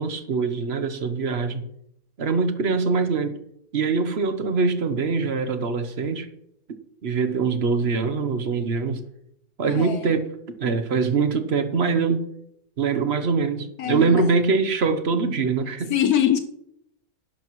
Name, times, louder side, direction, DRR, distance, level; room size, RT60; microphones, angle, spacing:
voice 1, 0.0-1.7 2.2-3.3 3.7-6.3 7.0-9.0 9.6-10.3 10.6-12.3 12.8-15.9, right 4 dB, 45° right, 9 dB, 1.1 m, -23 dB
voice 2, 9.6-10.2 13.8-14.4 15.9-16.4, left 10 dB, 70° left, 8 dB, 1.1 m, -23 dB
11.5 x 11.0 x 3.1 m, 0.76 s
omnidirectional pair, 1.7 m